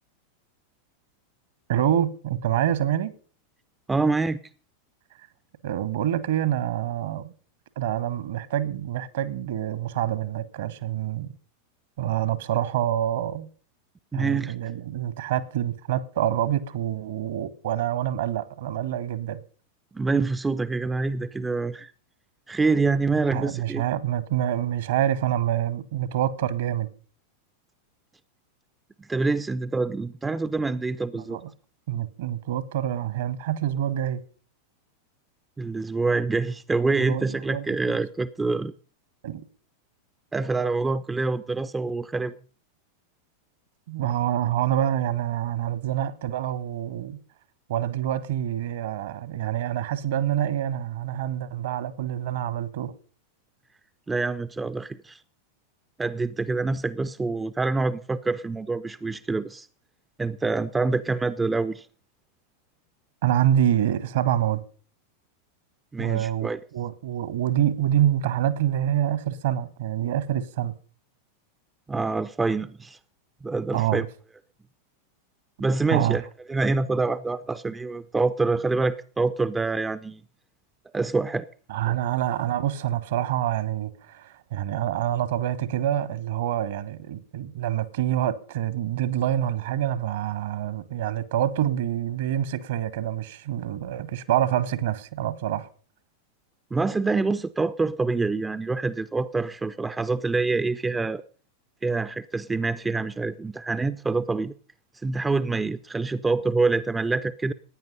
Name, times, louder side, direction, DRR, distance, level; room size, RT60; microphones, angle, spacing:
voice 1, 1.7-3.1 5.6-7.3 7.8-11.3 12.0-13.5 14.1-19.4 23.3-26.9 31.1-31.5 31.9-34.2 37.0-38.0 39.2-39.4 43.9-47.2 47.7-52.9 63.2-64.6 66.0-70.7 73.7-74.1 75.9-76.2 81.7-95.7, right 11 dB, 55° right, 1.2 m, -26 dB
voice 2, 3.9-4.4 14.1-14.5 19.9-21.9 22.5-23.8 29.0-31.4 35.6-38.7 40.3-42.4 54.1-55.2 56.0-59.7 60.2-61.9 65.9-66.6 71.9-73.0 73.4-74.1 75.6-76.2 76.5-80.2 80.9-81.5 81.9-82.0 96.7-101.2 101.8-104.5 105.0-107.5, right 3 dB, 10° right, 0.5 m, -26 dB
15.5 x 9.4 x 5.4 m
figure-of-eight pair, 90°, 0 cm